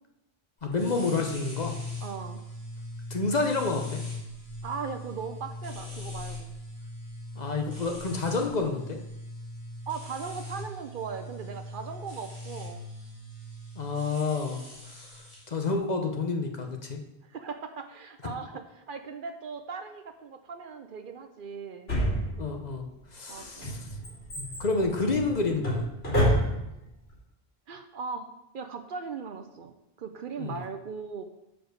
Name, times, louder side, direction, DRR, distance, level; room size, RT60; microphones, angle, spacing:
voice 1, 0.6-1.7 3.1-4.0 7.4-9.0 13.8-14.6 14.9-15.0 15.5-17.0 18.2-18.3 22.4-23.9 24.4-25.9 30.4-30.6, left 3 dB, 45° left, 3 dB, 0.9 m, -29 dB
sound 1, 0.7-15.4, left 1 dB, 30° left, 2.6 m, -40 dB
voice 2, 2.0-2.4 4.6-6.5 9.9-12.8 17.2-21.9 23.3-23.7 27.7-28.3 28.5-31.2, right 5 dB, 60° right, 7 dB, 0.8 m, -38 dB
Drawer open or close, 21.9-22.7 23.4-26.9 27.1-27.2, equal, 75° left, 3.0 m, -28 dB
7.0 x 5.1 x 6.4 m, 0.88 s
omnidirectional pair, 1.0 m